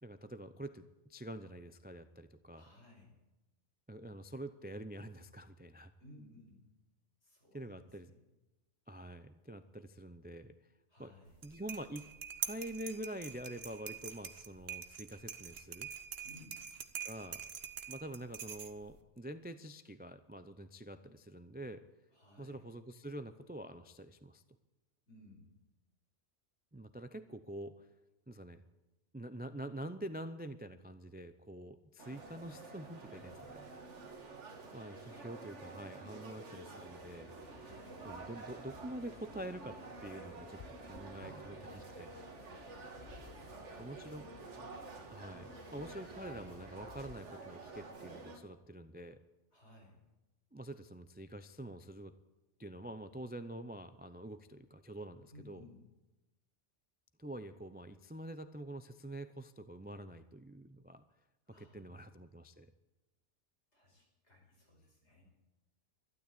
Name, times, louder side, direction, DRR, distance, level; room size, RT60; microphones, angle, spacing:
voice 1, 0.0-2.6 3.9-5.9 7.5-8.1 8.9-10.6 11.0-11.1 11.4-12.1 12.4-15.9 17.1-17.4 17.9-21.8 22.4-24.4 26.7-27.9 28.3-28.6 29.1-33.7 34.7-37.3 38.0-42.1 43.8-44.3 45.1-49.2 50.5-52.1 52.6-55.6 57.2-61.0 61.6-62.7, right 1 dB, 15° right, 10 dB, 0.3 m, -46 dB
voice 2, 2.5-3.1 6.0-6.6 7.2-8.2 10.9-11.4 16.2-16.6 22.1-22.6 25.1-25.6 33.1-33.9 34.6-35.2 37.5-38.1 41.2-41.8 43.3-43.9 44.2-44.5 49.5-50.0 55.3-55.8 61.5-62.0 63.7-65.2, left 1 dB, 65° left, -1 dB, 5.4 m, -60 dB
sound 1, 11.3-19.0, right 7 dB, 60° right, 1.1 m, -45 dB
sound 2, 32.0-48.4, right 3 dB, 75° right, 1.9 m, -50 dB
sound 3, 36.8-47.2, left 6 dB, 50° left, 0.5 m, -58 dB
12.5 x 12.0 x 8.4 m, 1.0 s
omnidirectional pair, 1.2 m